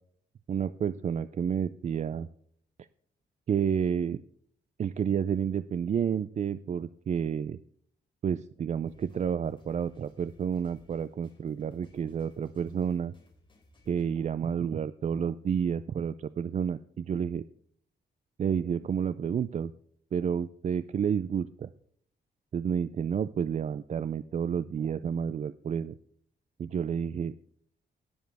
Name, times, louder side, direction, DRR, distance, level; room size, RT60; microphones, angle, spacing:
voice 1, 0.5-2.3 3.5-4.2 4.8-7.6 8.2-13.1 13.9-17.4 18.4-19.7 20.1-21.7 22.5-25.9 26.6-27.4, right 7 dB, 40° right, 14 dB, 0.4 m, -30 dB
sound 1, 8.8-14.0, equal, 25° left, 3.6 m, -60 dB
18.0 x 7.3 x 3.4 m, 0.63 s
wide cardioid pair, 150°, 18 cm